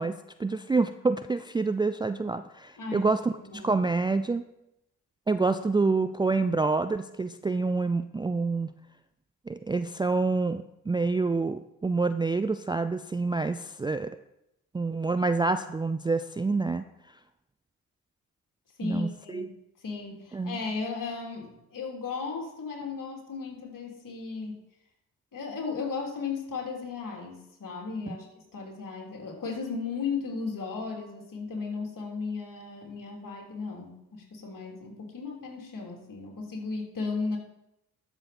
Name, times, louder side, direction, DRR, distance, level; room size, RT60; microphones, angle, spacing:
voice 1, 0.0-4.4 5.3-8.7 9.5-14.1 14.7-16.8 18.8-19.5 20.3-20.6, right 3 dB, 10° right, 10 dB, 0.4 m, -27 dB
voice 2, 2.8-3.7 18.8-19.6 19.8-24.6 25.3-37.4, left 4 dB, 50° left, 0 dB, 3.1 m, -35 dB
12.5 x 6.6 x 4.3 m, 0.84 s
hypercardioid pair, 45°, 42 cm